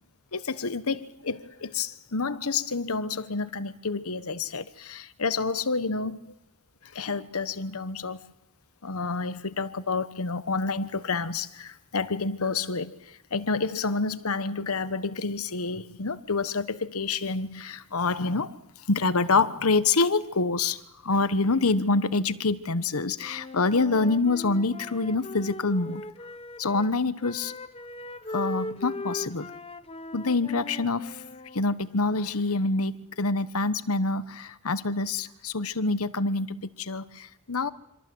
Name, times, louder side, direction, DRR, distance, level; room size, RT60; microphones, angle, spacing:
voice 1, 0.3-6.3 6.9-8.2 8.8-13.0 13.3-18.6 18.9-26.0 26.6-27.5 28.3-29.5 30.1-37.7, left 3 dB, 90° left, 1.2 m, -27 dB
Wind instrument woodwind instrument, 23.2-26.9 27.2-31.6, left 2 dB, 25° left, 1.0 m, -39 dB
27.0 x 26.0 x 7.9 m
head